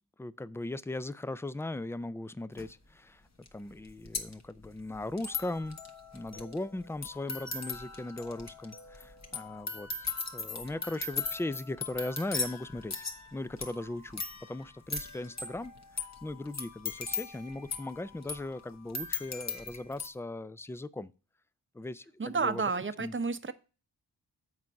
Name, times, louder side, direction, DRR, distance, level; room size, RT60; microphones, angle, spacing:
voice 1, 0.2-3.2 3.5-5.8 6.1-10.1 10.3-13.1 13.3-21.1 21.7-22.7 23.0-23.1, left 2 dB, 5° left, 0.3 m, -38 dB
sound 1, 2.6-2.7 3.5-3.6 3.7-20.1, left 4 dB, 40° left, 1.4 m, -39 dB
voice 2, 22.2-23.5, right 4 dB, 30° right, 0.7 m, -31 dB
7.5 x 4.7 x 5.6 m
cardioid pair, 65°, 41 cm